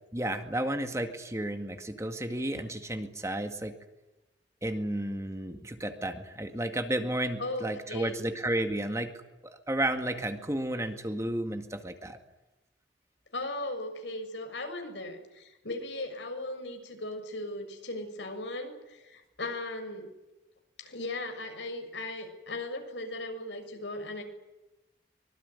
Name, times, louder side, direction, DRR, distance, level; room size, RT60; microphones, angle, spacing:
voice 1, 0.1-3.7 4.6-9.1 9.4-12.2, right 1 dB, 15° right, 6 dB, 2.0 m, -32 dB
voice 2, 7.4-8.3 13.3-20.1 20.8-24.2, left 2 dB, 90° left, 6 dB, 6.6 m, -37 dB
24.5 x 23.0 x 9.8 m, 1.0 s
head